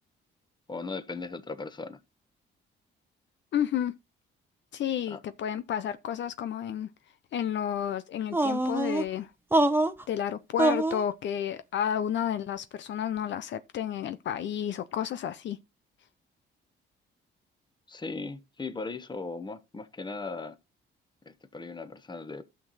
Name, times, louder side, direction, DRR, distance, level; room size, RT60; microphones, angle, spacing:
voice 1, 0.7-2.0 5.1-5.2 17.9-20.6 21.2-22.4, left 3 dB, 20° left, 1.2 m, -38 dB
voice 2, 3.5-3.9 4.7-6.9 7.3-9.3 10.1-15.6, left 9 dB, 65° left, 0.7 m, -31 dB
sound 1, 8.3-9.0 9.5-10.0 10.6-11.0, right 1 dB, 10° right, 0.9 m, -24 dB
12.0 x 6.0 x 4.1 m
cardioid pair, 90°, 20 cm